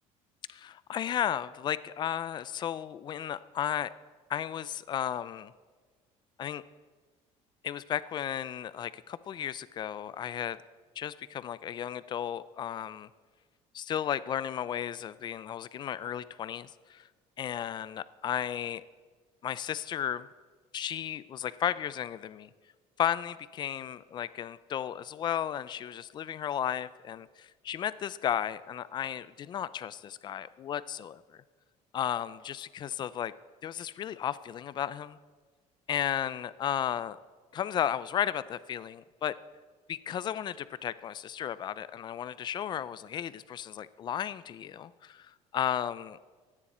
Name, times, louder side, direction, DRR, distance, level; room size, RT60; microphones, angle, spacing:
voice 1, 0.5-3.9 4.3-5.5 6.4-6.6 7.6-10.6 11.0-13.1 13.7-17.1 17.4-18.8 19.4-20.3 20.7-22.5 23.0-31.4 31.9-33.3 33.6-35.2 35.9-37.2 37.5-39.4 39.9-46.2, left 10 dB, 35° left, 16 dB, 0.4 m, -34 dB
22.0 x 9.8 x 4.3 m, 1.4 s
cardioid pair, 150°, 13 cm